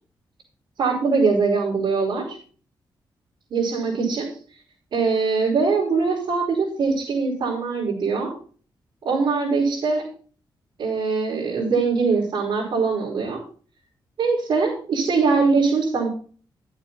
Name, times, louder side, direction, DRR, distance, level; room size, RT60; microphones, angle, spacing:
voice 1, 0.8-2.4 3.5-4.3 4.9-8.3 9.0-10.1 10.8-13.4 14.2-16.1, right 4 dB, 65° right, -7 dB, 5.4 m, -22 dB
12.0 x 8.8 x 4.2 m, 0.42 s
wide cardioid pair, 150°, 8 cm